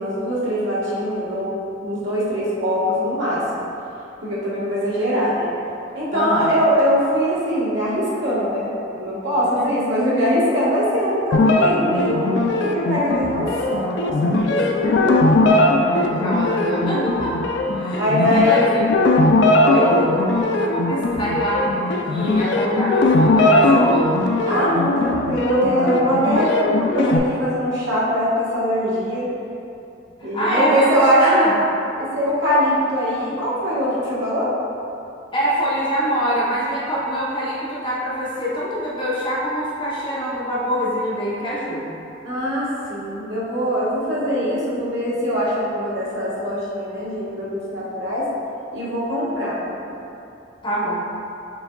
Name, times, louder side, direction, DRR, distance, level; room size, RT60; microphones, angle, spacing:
voice 1, 0.0-3.6 4.2-15.7 17.9-18.7 19.6-19.9 24.5-29.3 30.2-31.6 32.0-34.5 42.2-48.3 48.7-49.6, equal, 85° right, -8 dB, 1.4 m, -22 dB
voice 2, 6.1-6.6 9.6-9.7 15.8-17.3 17.7-18.6 19.7-24.2 30.2-30.9 31.2-31.5 35.3-41.9 50.6-51.0, equal, 30° left, -7 dB, 0.9 m, -24 dB
sound 1, 11.3-27.2, left 2 dB, 70° left, 0.4 m, -19 dB
6.0 x 3.5 x 2.3 m, 2.8 s
head